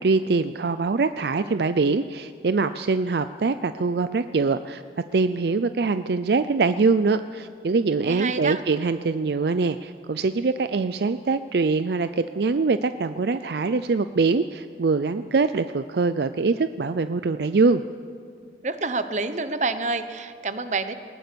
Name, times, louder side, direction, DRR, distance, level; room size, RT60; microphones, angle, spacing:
voice 1, 0.0-4.8 5.1-17.8, right 4 dB, 70° right, 12 dB, 0.5 m, -23 dB
voice 2, 8.0-8.6 18.6-20.9, right 3 dB, 40° right, 11 dB, 1.0 m, -28 dB
20.0 x 19.0 x 6.9 m, 2.2 s
head